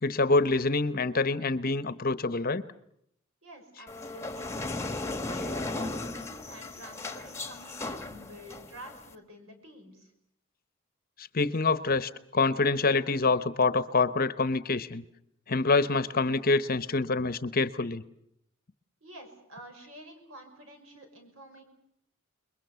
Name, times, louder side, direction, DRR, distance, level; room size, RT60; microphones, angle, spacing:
voice 1, 0.0-2.6 11.2-15.0 15.5-18.0, left 3 dB, 45° left, 14 dB, 1.0 m, -26 dB
voice 2, 3.4-4.5 5.0-10.1 19.0-21.6, right 1 dB, 70° right, 5 dB, 6.1 m, -49 dB
sound 1, 3.9-9.1, left 2 dB, 15° left, 1.4 m, -36 dB
29.5 x 22.0 x 7.0 m, 0.74 s
head